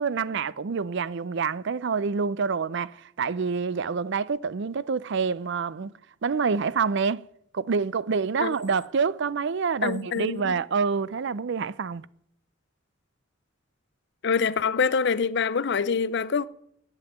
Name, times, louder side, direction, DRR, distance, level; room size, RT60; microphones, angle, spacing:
voice 1, 0.0-2.9 3.2-5.9 6.2-7.2 7.5-12.0, right 5 dB, 65° right, 0.5 m, -27 dB
voice 2, 9.8-10.5 14.2-16.5, left 5 dB, 60° left, 0.6 m, -25 dB
9.8 x 8.1 x 9.3 m
head